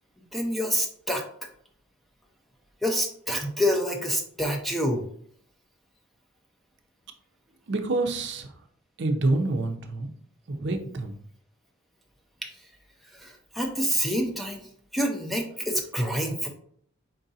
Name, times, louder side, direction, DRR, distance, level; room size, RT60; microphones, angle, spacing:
voice 1, 0.3-1.2 2.8-5.1 12.4-12.5 13.1-16.5, equal, ahead, 1 dB, 0.5 m, -27 dB
voice 2, 7.7-8.5 9.0-10.1 10.5-11.2, right 2 dB, 60° right, 5 dB, 0.6 m, -27 dB
4.6 x 3.8 x 2.7 m, 0.62 s
head